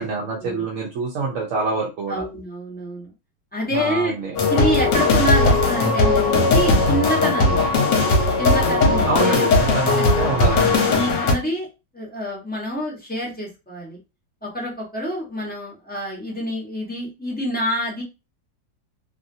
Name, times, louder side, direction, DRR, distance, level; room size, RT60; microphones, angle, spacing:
voice 1, 0.0-2.2 3.7-4.3 9.0-10.9, right 4 dB, 60° right, -3 dB, 0.9 m, -26 dB
voice 2, 2.1-3.1 3.5-4.1 4.5-7.6 8.4-10.1 10.5-11.7 11.9-14.0 14.4-18.0, equal, 10° left, -4 dB, 0.7 m, -27 dB
sound 1, 4.4-11.3, left 3 dB, 70° left, 1.4 m, -18 dB
3.2 x 2.5 x 2.6 m, 0.27 s
omnidirectional pair, 2.0 m